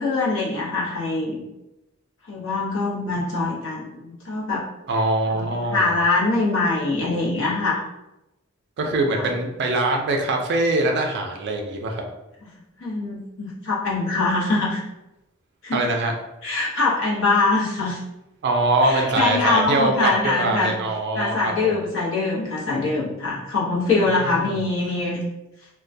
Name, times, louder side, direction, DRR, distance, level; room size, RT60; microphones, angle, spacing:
voice 1, 0.0-1.4 2.3-4.6 5.3-5.4 5.7-7.8 9.1-9.3 12.8-14.8 15.6-15.8 16.4-18.0 18.8-20.7 21.1-25.2, left 3 dB, 60° left, -6 dB, 0.7 m, -23 dB
voice 2, 4.9-5.9 8.8-12.0 15.7-16.1 18.4-21.7 24.2-24.5, right 2 dB, 50° right, 2 dB, 0.4 m, -23 dB
2.2 x 2.1 x 2.6 m, 0.95 s
head